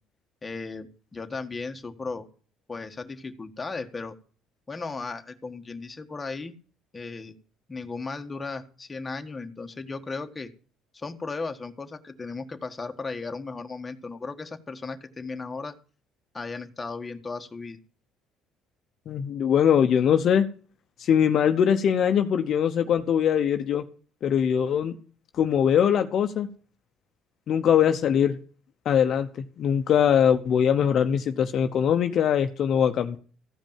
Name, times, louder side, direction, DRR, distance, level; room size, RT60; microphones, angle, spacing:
voice 1, 0.4-2.3 2.7-4.1 4.7-6.6 6.9-7.3 7.7-10.5 10.9-15.8 16.3-17.8, left 4 dB, 20° left, 6 dB, 1.4 m, -36 dB
voice 2, 19.1-20.5 21.0-23.8 24.2-24.9 25.4-26.5 27.5-28.4 28.8-33.2, left 8 dB, 55° left, 7 dB, 0.9 m, -22 dB
15.0 x 5.2 x 7.3 m, 0.40 s
cardioid pair, 105°, 0 cm